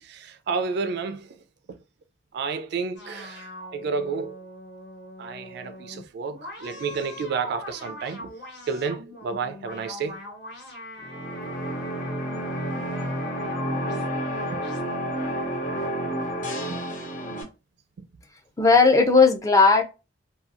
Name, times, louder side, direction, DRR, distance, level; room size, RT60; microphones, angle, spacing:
voice 1, 0.0-1.4 2.3-4.4 5.2-8.3 8.7-10.2 14.5-14.6 15.8-15.9 16.7-16.8 17.3-17.4 18.0-18.1, right 5 dB, 60° right, 0.3 m, -31 dB
sound 1, 3.0-14.1 14.6-14.8, left 1 dB, 65° left, 1.3 m, -41 dB
sound 2, 11.0-17.4, equal, 45° left, 0.8 m, -30 dB
voice 2, 18.6-19.8, left 4 dB, 15° left, 0.4 m, -16 dB
2.7 x 2.3 x 2.4 m
head